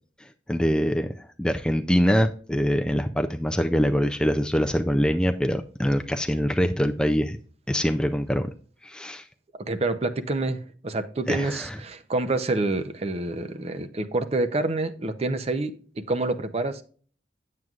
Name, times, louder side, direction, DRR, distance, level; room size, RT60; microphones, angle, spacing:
voice 1, 0.5-7.4 7.7-8.5 8.8-9.3 11.3-11.8, equal, 5° left, 0.3 m, -24 dB
voice 2, 9.5-15.7 16.1-16.8, right 2 dB, 35° right, 0.6 m, -27 dB
9.3 x 7.5 x 2.4 m
head